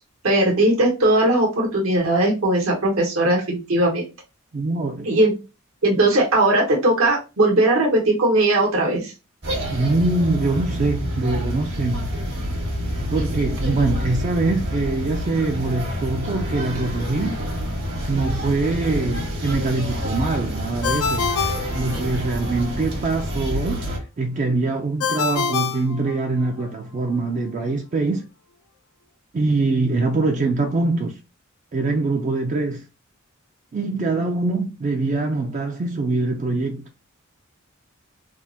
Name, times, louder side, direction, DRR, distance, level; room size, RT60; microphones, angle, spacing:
voice 1, 0.2-4.1 5.0-5.3 5.8-9.1, right 1 dB, 75° right, 1.1 m, -19 dB
voice 2, 4.5-5.1 9.7-12.1 13.1-17.4 18.1-28.2 29.3-31.2 31.7-32.8 33.7-36.9, right 3 dB, 35° right, 0.3 m, -23 dB
sound 1, 9.4-24.0, equal, 55° right, 1.1 m, -27 dB
Ringtone, 20.8-22.5 25.0-26.7, left 5 dB, 85° left, 0.4 m, -26 dB
3.5 x 2.0 x 2.6 m
head